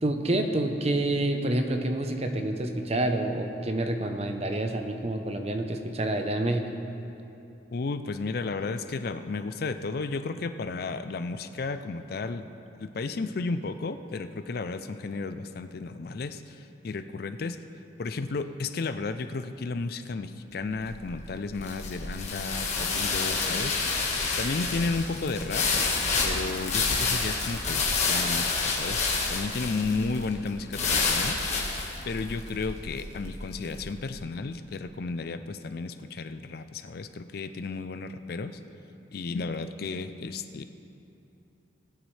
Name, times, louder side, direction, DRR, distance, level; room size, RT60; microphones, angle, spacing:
voice 1, 0.0-6.7, right 1 dB, 30° right, 5 dB, 0.7 m, -28 dB
voice 2, 7.7-12.4 12.8-17.6 18.0-24.0 24.4-25.6 26.2-29.0 29.3-31.7 32.0-38.6 39.1-40.6, left 3 dB, 50° left, 10 dB, 0.4 m, -33 dB
sound 1, 20.6-33.9, left 4 dB, 35° left, 1.5 m, -29 dB
19.5 x 9.2 x 3.3 m, 2.9 s
head